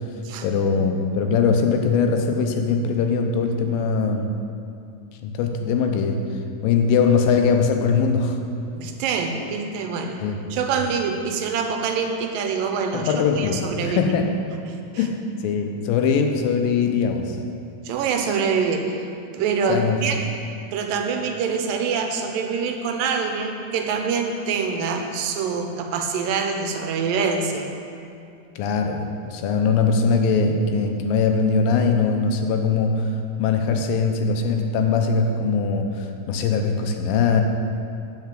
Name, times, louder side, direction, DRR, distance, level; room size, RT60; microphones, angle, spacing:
voice 1, 0.4-4.3 5.2-6.2 6.6-8.4 10.2-10.4 12.9-14.3 15.0-17.4 19.7-20.0 28.6-29.0 29.3-33.1 33.4-37.4, left 5 dB, 85° left, 4 dB, 2.5 m, -21 dB
voice 2, 8.8-14.1 14.7-15.1 17.8-19.1 19.3-20.3 20.7-27.7, right 5 dB, 80° right, 4 dB, 2.4 m, -25 dB
9.1 x 5.8 x 7.5 m, 2.5 s
omnidirectional pair, 4.0 m